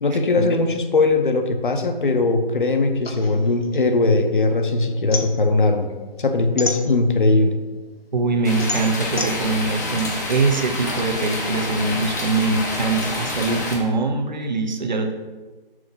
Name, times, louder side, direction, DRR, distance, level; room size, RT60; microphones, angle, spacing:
voice 1, 0.0-5.9 6.2-7.6, left 3 dB, 60° left, 6 dB, 0.9 m, -19 dB
sound 1, 3.0-4.5 4.8-7.4 7.8-11.0, left 3 dB, 85° left, 1.2 m, -31 dB
voice 2, 8.1-15.1, right 3 dB, 50° right, 5 dB, 0.9 m, -23 dB
sound 2, 8.4-13.8, left 2 dB, 20° left, 0.7 m, -28 dB
6.2 x 5.7 x 3.8 m, 1.3 s
figure-of-eight pair, 165°, 29 cm